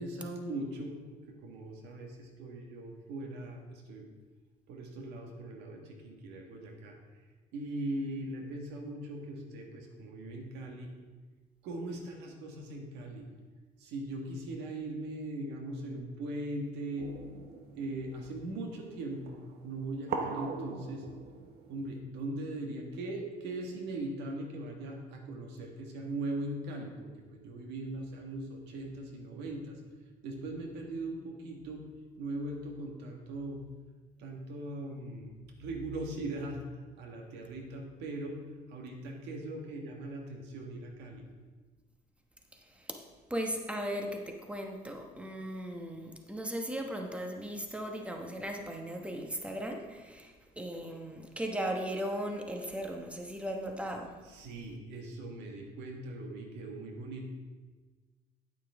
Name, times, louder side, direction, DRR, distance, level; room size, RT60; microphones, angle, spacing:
voice 1, 0.0-4.1 4.7-7.0 7.5-10.9 11.6-13.3 13.8-17.1 17.7-19.4 19.6-21.1 21.7-29.8 30.2-31.8 32.2-33.6 34.2-38.4 38.7-41.2 54.2-57.4, right 1 dB, 90° right, 2 dB, 1.6 m, -40 dB
sound 1, 17.0-22.0, right 5 dB, 70° right, 1.0 m, -42 dB
voice 2, 43.3-54.2, equal, 5° right, 3 dB, 1.1 m, -37 dB
9.2 x 8.9 x 3.6 m, 1.3 s
cardioid pair, 110°, 17 cm